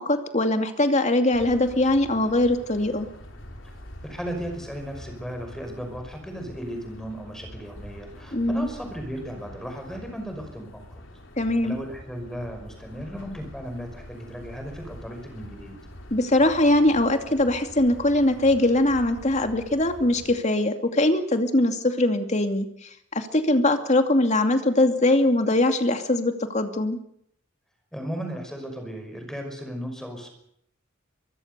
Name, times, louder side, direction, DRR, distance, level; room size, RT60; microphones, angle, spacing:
voice 1, 0.0-3.1 8.3-8.7 11.4-11.8 16.1-27.0, left 1 dB, 35° left, 7 dB, 2.5 m, -22 dB
sound 1, 1.3-20.4, equal, 65° left, 4.4 m, -45 dB
voice 2, 4.0-10.8 11.6-15.8 27.9-30.3, equal, 5° left, 5 dB, 5.6 m, -36 dB
24.0 x 23.0 x 6.8 m, 0.71 s
head